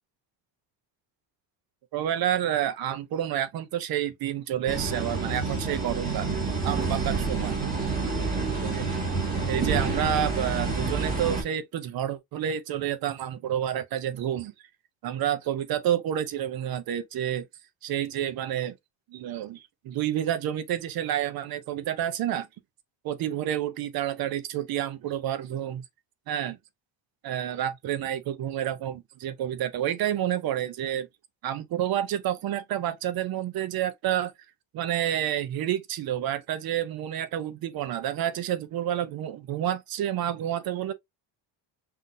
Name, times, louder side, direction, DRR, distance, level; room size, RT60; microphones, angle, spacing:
voice 1, 1.9-6.3 6.6-7.6 8.6-8.9 9.5-14.5 15.0-17.5 17.8-18.7 19.1-22.5 23.1-25.8 26.3-26.6 27.2-31.1 31.4-34.3 34.7-40.9, right 11 dB, 50° right, 0.7 m, -29 dB
sound 1, 4.7-11.4, right 4 dB, 20° right, 2.0 m, -28 dB
5.7 x 2.7 x 2.5 m
cardioid pair, 160°, 46 cm